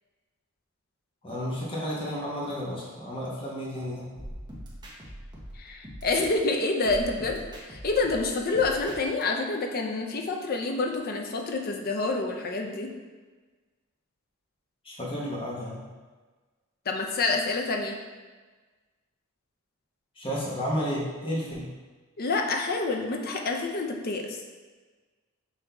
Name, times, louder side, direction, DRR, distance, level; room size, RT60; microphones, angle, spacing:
voice 1, 1.2-4.0 14.8-15.8 20.2-21.7, equal, 25° left, -5 dB, 1.0 m, -32 dB
sound 1, 4.2-6.5 6.8-9.2, equal, 20° right, 0.9 m, -42 dB
voice 2, 5.6-12.9 16.9-18.0 22.2-24.4, left 3 dB, 45° left, 2 dB, 0.5 m, -28 dB
5.8 x 2.7 x 3.4 m, 1.3 s
head